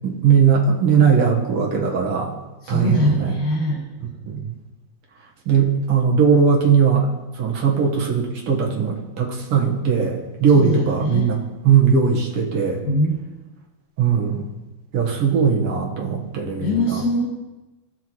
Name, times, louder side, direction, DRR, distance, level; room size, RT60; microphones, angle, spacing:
voice 1, 0.0-2.3 2.7-3.4 4.2-4.4 5.5-7.1 7.4-12.8 14.0-14.5 14.9-17.0, right 6 dB, 55° right, -1 dB, 2.0 m, -19 dB
voice 2, 2.6-3.8 10.5-11.3 12.8-13.2 16.6-17.2, left 1 dB, 70° left, -3 dB, 2.9 m, -22 dB
16.0 x 5.7 x 3.1 m, 1.1 s
omnidirectional pair, 3.5 m